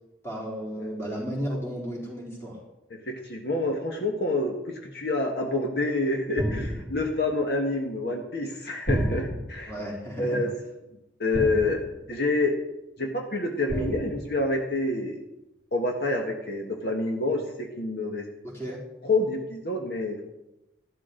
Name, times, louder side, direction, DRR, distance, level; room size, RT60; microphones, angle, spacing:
voice 1, 0.2-2.6 9.7-10.5 18.4-18.8, equal, 15° left, -4 dB, 3.7 m, -33 dB
voice 2, 2.9-9.7 10.2-10.5 11.2-11.8 12.1-12.5 13.0-15.2 15.7-18.2 19.0-20.3, left 2 dB, 60° left, 1 dB, 1.5 m, -27 dB
sound 1, 6.4-7.2 8.9-9.7 11.3-12.0 13.7-14.3, equal, 5° right, 3.3 m, -30 dB
13.5 x 12.5 x 3.9 m, 0.93 s
head